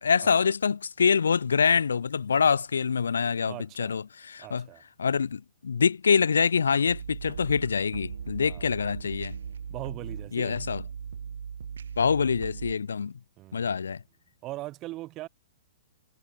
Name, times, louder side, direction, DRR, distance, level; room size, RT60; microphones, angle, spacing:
voice 1, 0.0-4.7 5.0-9.4 10.3-10.8 12.0-13.1 13.5-14.0, left 6 dB, 65° left, 1.2 m, -25 dB
voice 2, 3.5-4.0 4.4-4.8 8.4-8.7 9.7-10.6 13.4-13.8 14.4-15.3, right 17 dB, 30° right, 2.4 m, -40 dB
sound 1, 6.9-12.7, right 7 dB, 60° right, 1.2 m, -38 dB
figure-of-eight pair, 110°, 0 cm